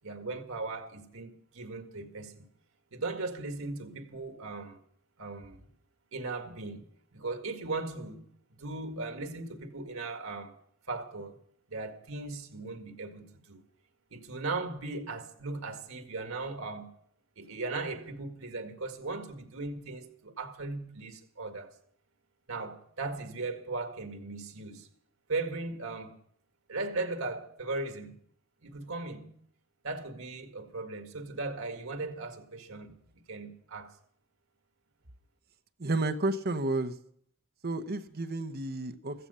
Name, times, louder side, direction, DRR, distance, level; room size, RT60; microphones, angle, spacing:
voice 1, 0.0-2.5 2.9-4.8 5.2-5.6 6.1-8.2 8.6-10.5 10.9-11.4 11.7-13.6 14.1-16.9 17.4-21.7 22.5-24.9 25.3-26.2 26.7-28.2 28.6-29.4 29.8-32.9 33.3-33.9, right 3 dB, 90° right, 2.0 m, -38 dB
voice 2, 35.8-37.0 37.6-39.3, right 2 dB, 50° right, 1.0 m, -31 dB
15.5 x 15.0 x 5.6 m
head